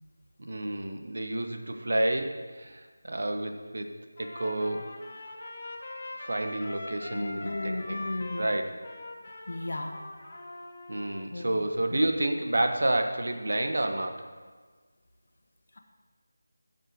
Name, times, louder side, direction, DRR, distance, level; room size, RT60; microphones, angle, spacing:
voice 1, 0.4-3.9 4.2-4.9 6.2-7.5 7.9-8.0 8.4-8.7 10.9-14.3, right 1 dB, 65° right, 5 dB, 1.2 m, -29 dB
Trumpet, 4.2-11.2, left 2 dB, 40° left, 1.7 m, -42 dB
voice 2, 7.1-8.5 9.5-9.9 11.3-12.1, left 2 dB, 60° left, 4 dB, 1.3 m, -35 dB
15.0 x 5.4 x 4.7 m, 1.4 s
figure-of-eight pair, 165°, 0 cm